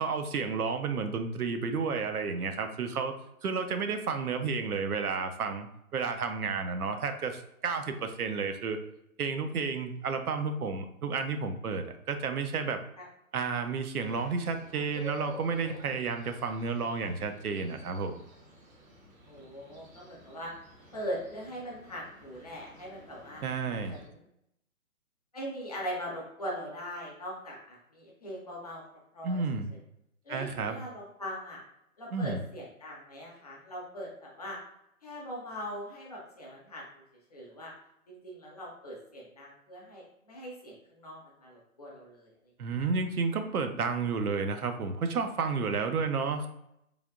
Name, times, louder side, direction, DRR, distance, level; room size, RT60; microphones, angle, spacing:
voice 1, 0.0-3.2 3.4-5.7 5.9-8.8 9.2-12.8 13.3-18.2 23.4-24.0 29.2-29.7 30.3-30.8 32.1-32.4 42.6-46.5, right 5 dB, 90° right, 7 dB, 0.6 m, -31 dB
sound 1, 14.0-24.1, right 1 dB, 70° right, 1.0 m, -50 dB
voice 2, 19.3-20.5 20.9-23.4 23.9-24.2 25.3-28.8 29.1-29.4 30.3-31.6 32.0-34.6 35.0-36.8 37.3-37.7 38.1-42.3, equal, 30° left, -3 dB, 0.5 m, -41 dB
3.3 x 2.4 x 2.4 m, 0.80 s
hypercardioid pair, 150°, 43 cm